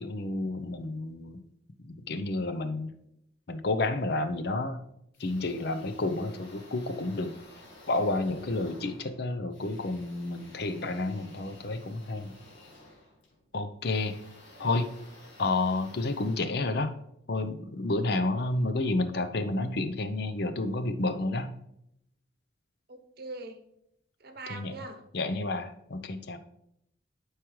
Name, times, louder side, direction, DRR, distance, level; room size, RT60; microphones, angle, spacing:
voice 1, 0.0-1.4 1.8-2.9 3.5-4.8 5.2-7.3 7.9-12.3 13.5-14.2 14.6-14.9 15.4-16.9 17.3-21.6 24.5-24.7 25.1-26.4, left 2 dB, 55° left, 10 dB, 0.6 m, -30 dB
sound 1, 5.1-17.3, left 1 dB, 80° left, 2.2 m, -53 dB
voice 2, 22.9-23.6 24.2-25.0, right 3 dB, 55° right, 6 dB, 0.9 m, -42 dB
11.5 x 4.8 x 3.1 m, 0.77 s
head